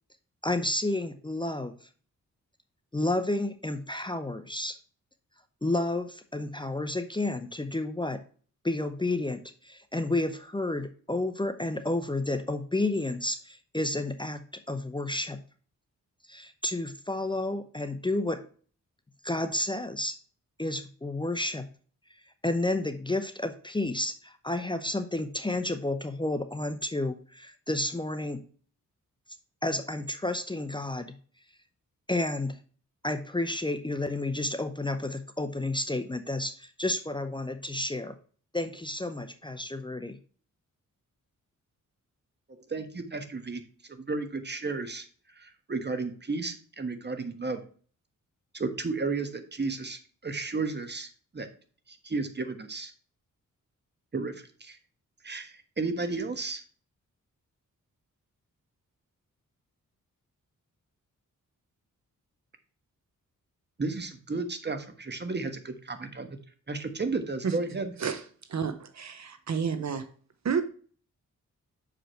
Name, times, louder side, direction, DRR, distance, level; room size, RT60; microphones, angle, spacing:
voice 1, 0.4-1.7 2.9-4.7 5.6-8.2 8.6-14.4 14.7-15.4 16.3-18.4 19.2-20.1 20.6-21.6 22.4-28.4 29.6-31.1 32.1-32.6 33.0-38.2 38.5-40.2, left 2 dB, 15° left, 0.7 m, -31 dB
voice 2, 42.5-43.6 43.9-45.0 45.4-47.6 48.5-51.5 52.0-52.9 54.1-54.3 54.6-54.8 55.2-56.6 63.8-66.4 66.7-67.9, right 3 dB, 30° right, 1.3 m, -33 dB
voice 3, 68.5-70.1 70.4-70.6, right 6 dB, 55° right, 0.9 m, -30 dB
6.4 x 5.0 x 4.4 m
cardioid pair, 70°, 32 cm